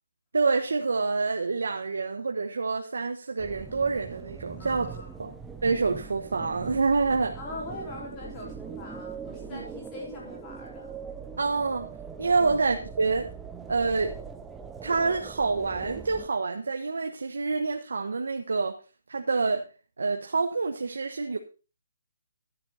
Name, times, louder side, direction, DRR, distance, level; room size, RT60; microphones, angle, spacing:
voice 1, 0.3-4.9 5.2-5.3 5.6-7.4 9.5-9.6 11.4-11.9 12.2-13.3 13.7-14.1 14.8-18.7 19.1-19.6 20.0-21.4, right 4 dB, 80° right, 4 dB, 1.3 m, -27 dB
sound 1, 3.4-16.3, right 6 dB, 5° right, 0.5 m, -42 dB
voice 2, 4.6-5.3 7.3-10.9 12.4-12.6, left 2 dB, 15° left, -3 dB, 3.6 m, -41 dB
12.5 x 7.7 x 4.3 m, 0.34 s
hypercardioid pair, 175°, 0 cm